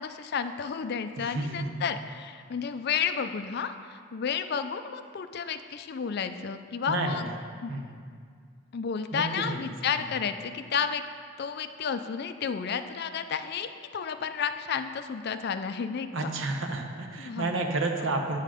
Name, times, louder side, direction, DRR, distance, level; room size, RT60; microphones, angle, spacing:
voice 1, 0.0-7.3 7.6-7.7 8.7-11.0 11.4-16.3 17.2-17.6, left 6 dB, 50° left, 10 dB, 0.4 m, -32 dB
voice 2, 1.2-1.7 6.9-7.2 7.7-7.9 9.1-9.6 9.9-10.0 16.1-18.4, right 2 dB, 65° right, 3 dB, 0.8 m, -30 dB
9.1 x 5.6 x 5.0 m, 2.1 s
head